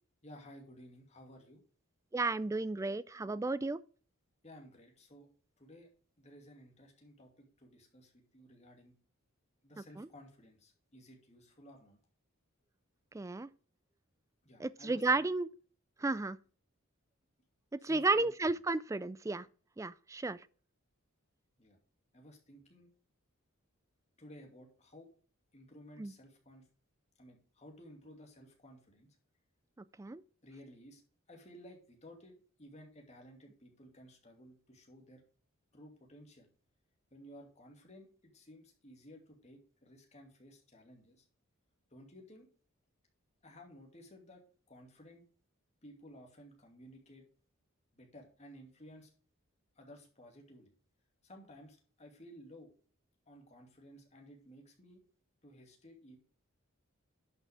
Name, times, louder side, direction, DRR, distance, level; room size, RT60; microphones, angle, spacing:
voice 1, 0.2-1.6 4.4-5.3 5.6-5.9 6.2-8.9 9.6-12.0 14.4-15.2 17.8-18.6 21.6-21.8 22.1-22.9 24.2-25.1 25.5-26.7 27.2-29.1 30.4-31.0 31.3-35.2 35.7-36.5 37.1-41.3 41.9-42.5 43.4-45.2 45.8-47.2 47.9-49.1 49.8-50.7 51.2-52.7 53.3-55.0 55.4-56.2, equal, 30° left, 2.5 m, -56 dB
voice 2, 2.1-3.8 9.8-10.1 13.1-13.5 14.6-15.5 16.0-16.4 17.8-19.5 19.8-20.4 26.0-26.1 30.0-30.2, right 3 dB, 15° right, 0.3 m, -33 dB
11.0 x 6.0 x 3.5 m
head